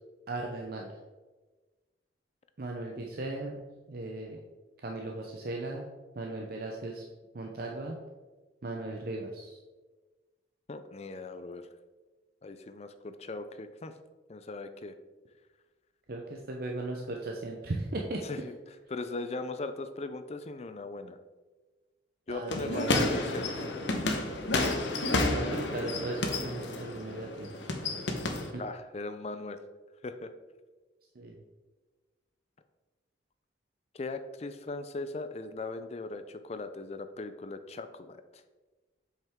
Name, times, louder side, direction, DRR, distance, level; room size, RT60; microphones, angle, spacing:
voice 1, 0.3-0.9 2.6-3.6 3.9-4.4 4.8-5.9 6.1-7.0 7.3-8.0 8.6-9.6 16.1-18.2 22.3-23.3 25.2-27.6 28.5-28.6 31.2-31.3, right 2 dB, 55° right, 0 dB, 0.6 m, -37 dB
voice 2, 10.7-11.7 12.4-13.9 14.3-14.9 18.2-18.6 18.9-21.2 22.3-23.7 28.5-29.6 30.0-30.3 33.9-38.4, left 3 dB, 35° left, 10 dB, 0.4 m, -39 dB
sound 1, 22.5-28.5, left 2 dB, 80° left, 1.0 m, -31 dB
7.6 x 5.6 x 3.6 m, 1.3 s
head